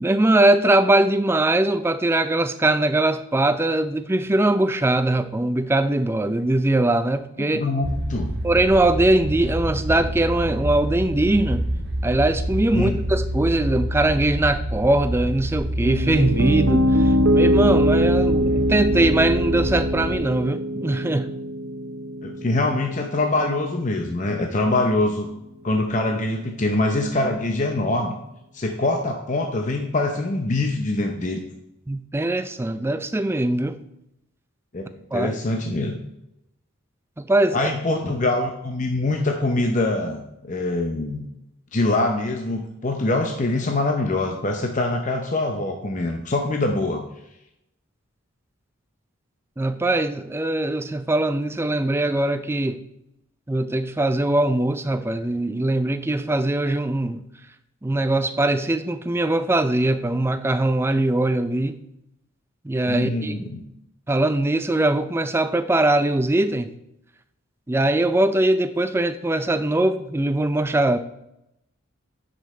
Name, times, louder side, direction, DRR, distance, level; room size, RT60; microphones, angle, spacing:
voice 1, 0.0-7.6 8.4-11.7 12.0-21.3 31.9-33.8 35.1-35.3 37.2-37.6 49.6-52.8 53.5-57.2 57.8-61.8 62.6-63.4 64.1-66.7 67.7-71.0, right 1 dB, 10° right, 11 dB, 0.4 m, -21 dB
voice 2, 7.4-8.3 12.7-13.0 22.2-25.3 25.6-28.2 28.5-31.4 34.7-34.8 35.1-36.0 37.5-40.2 40.5-41.2 41.7-47.0 62.9-63.6, left 2 dB, 35° left, 3 dB, 0.7 m, -24 dB
sound 1, 7.8-20.2, equal, 50° right, 1.3 m, -27 dB
Piano, 15.8-23.9, equal, 90° right, 0.8 m, -22 dB
10.0 x 5.3 x 4.3 m, 0.84 s
head